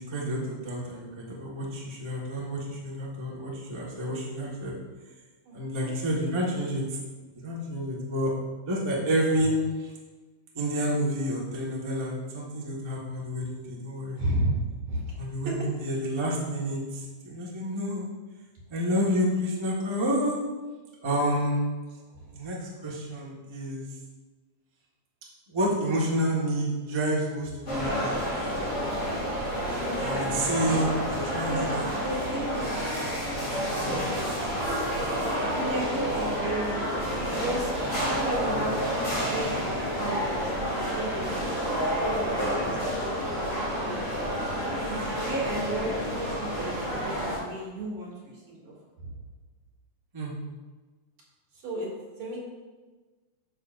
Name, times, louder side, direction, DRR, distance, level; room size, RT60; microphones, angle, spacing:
voice 1, 0.0-4.7 5.5-7.0 7.3-8.3 8.7-9.9 10.5-14.2 15.2-18.0 18.7-20.4 21.0-21.6 22.3-23.8 25.5-28.3 30.0-31.8 33.9-34.0 50.1-50.3, equal, 25° right, -5 dB, 0.5 m, -29 dB
voice 2, 5.4-5.9 14.2-14.6 14.9-15.0 15.4-15.5 22.1-22.2 31.5-32.7 35.5-37.7 38.1-38.8 39.2-41.5 42.0-44.1 44.9-48.7 49.0-49.1 51.6-51.9 52.2-52.4, right 1 dB, 60° right, -5 dB, 3.3 m, -34 dB
sound 1, 27.7-47.4, equal, 25° left, 2.8 m, -29 dB
9.9 x 6.9 x 2.6 m, 1.3 s
omnidirectional pair, 3.3 m